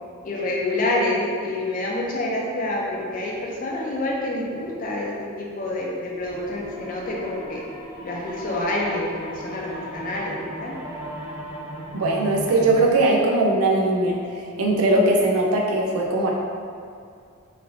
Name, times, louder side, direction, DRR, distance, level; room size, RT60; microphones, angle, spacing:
voice 1, 0.2-5.1 5.4-7.6 8.0-10.3 10.6-10.7, left 1 dB, 40° left, -3 dB, 0.5 m, -27 dB
sound 1, 6.2-13.0, equal, 70° left, 1.1 m, -36 dB
voice 2, 11.9-14.2 14.6-16.3, right 2 dB, 80° right, -1 dB, 0.5 m, -20 dB
3.1 x 2.6 x 2.6 m, 2.3 s
head